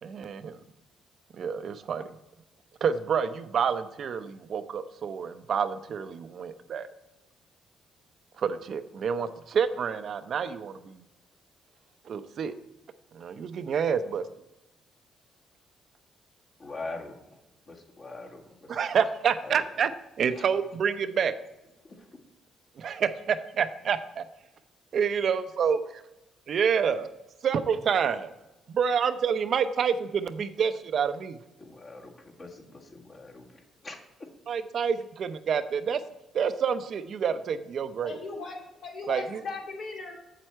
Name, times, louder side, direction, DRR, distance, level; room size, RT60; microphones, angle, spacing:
voice 1, 0.0-0.6 1.3-2.1 2.8-6.9 8.4-11.0 12.1-12.5 13.1-14.2 18.7-19.9 20.2-21.4 22.8-24.2 24.9-25.8 26.5-27.1 27.4-28.3 28.7-31.4 34.5-36.0 36.3-38.2 39.1-39.4, right 7 dB, 60° right, 11 dB, 0.6 m, -28 dB
voice 2, 16.6-17.4 17.7-18.8 19.4-19.6 20.3-20.4 21.8-22.1 31.6-34.3, left 3 dB, 45° left, -2 dB, 2.1 m, -43 dB
voice 3, 38.0-40.1, left 3 dB, 65° left, -2 dB, 2.8 m, -38 dB
7.6 x 7.6 x 4.5 m, 0.96 s
cardioid pair, 90°, 0 cm